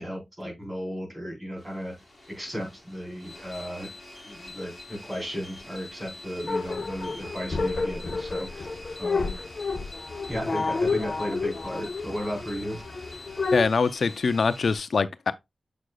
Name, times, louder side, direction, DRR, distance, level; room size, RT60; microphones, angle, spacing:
voice 1, 0.0-2.0 2.3-3.9 4.2-8.7 9.0-9.4 10.3-12.8, equal, 15° right, 3.7 m, -35 dB
sound 1, 1.6-14.8, left 2 dB, 25° left, 4.6 m, -45 dB
sound 2, 6.5-13.7, left 3 dB, 50° left, 0.8 m, -30 dB
voice 2, 13.5-15.3, left 4 dB, 65° left, 0.4 m, -24 dB
7.5 x 6.4 x 2.2 m
wide cardioid pair, 130°, 0 cm